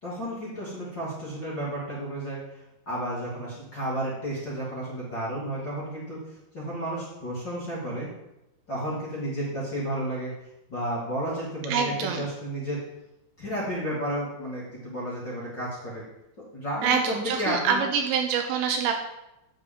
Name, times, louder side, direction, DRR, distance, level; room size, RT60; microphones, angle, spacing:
voice 1, 0.0-2.4 2.9-6.2 6.5-8.1 8.7-10.3 10.7-12.8 13.4-16.0 16.5-17.8, right 1 dB, 30° left, -9 dB, 2.2 m, -32 dB
voice 2, 11.7-12.2 16.8-18.9, right 7 dB, 80° right, 4 dB, 2.8 m, -25 dB
12.5 x 7.4 x 3.8 m, 0.91 s
omnidirectional pair, 5.5 m